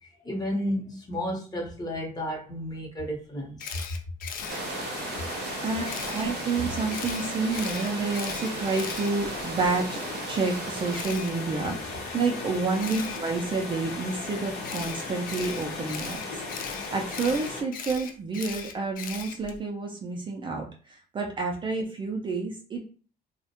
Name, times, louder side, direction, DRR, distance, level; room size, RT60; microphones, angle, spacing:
voice 1, 0.0-3.8, equal, 25° left, 0.8 m, -32 dB
Camera, 3.6-4.6 5.8-6.2 6.9-9.7 10.9-11.3 12.8-13.2 14.6-19.6, left 6 dB, 55° left, 0.4 m, -38 dB
sound 1, 4.4-17.6, left 3 dB, 80° left, 0.8 m, -36 dB
sound 2, 4.5-11.0, right 5 dB, 80° right, 0.6 m, -38 dB
voice 2, 5.6-10.0 10.3-22.8, right 4 dB, 30° right, 0.4 m, -29 dB
2.3 x 2.1 x 2.8 m
cardioid pair, 110°, 17 cm